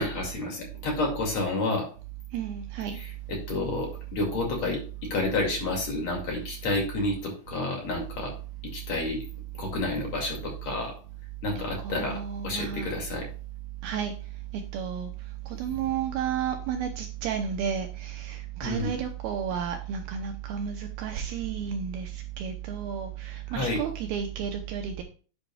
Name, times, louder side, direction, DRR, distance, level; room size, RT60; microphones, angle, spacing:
voice 1, 0.0-1.9 2.9-8.3 8.6-9.2 9.5-11.0 11.4-13.3 18.6-18.9 23.5-23.8, left 2 dB, 45° left, 2.8 m, -30 dB
voice 2, 2.3-3.0 11.6-12.9 13.8-14.1 14.7-15.1 15.6-22.1 22.4-25.0, right 8 dB, 80° right, 2.2 m, -32 dB
10.0 x 9.4 x 2.3 m
omnidirectional pair, 5.4 m